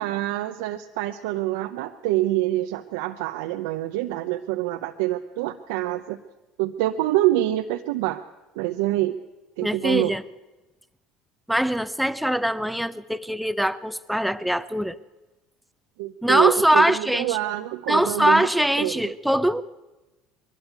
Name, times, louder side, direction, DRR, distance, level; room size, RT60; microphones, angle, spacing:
voice 1, 0.0-6.2 6.6-8.2 8.6-9.2 9.6-10.1 16.0-18.5 18.8-19.1, right 15 dB, 85° right, 6 dB, 0.7 m, -26 dB
voice 2, 9.6-10.2 11.5-15.0 16.2-17.4 17.9-19.6, equal, ahead, 14 dB, 0.8 m, -22 dB
21.5 x 12.5 x 9.5 m, 1.1 s
supercardioid pair, 100°, 0 cm